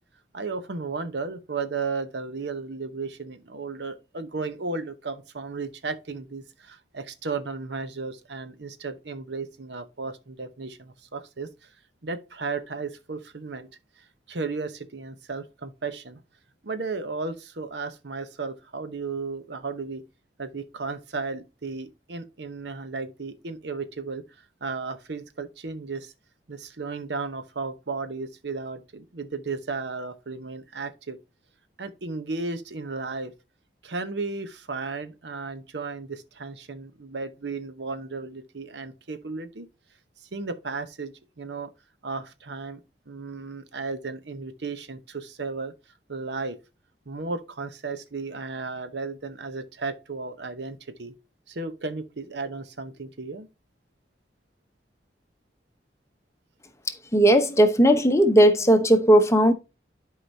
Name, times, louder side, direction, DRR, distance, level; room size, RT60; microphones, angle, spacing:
voice 1, 0.3-11.7 12.0-13.7 14.3-16.2 16.6-20.0 20.4-24.2 24.6-26.1 26.5-31.2 31.8-33.3 33.8-39.7 40.2-41.7 42.0-42.8 43.1-45.7 46.1-46.6 47.1-51.1 51.5-53.5, right 4 dB, 80° right, 0.9 m, -34 dB
voice 2, 57.1-59.5, right 1 dB, 15° left, 0.9 m, -17 dB
11.5 x 4.9 x 2.7 m
head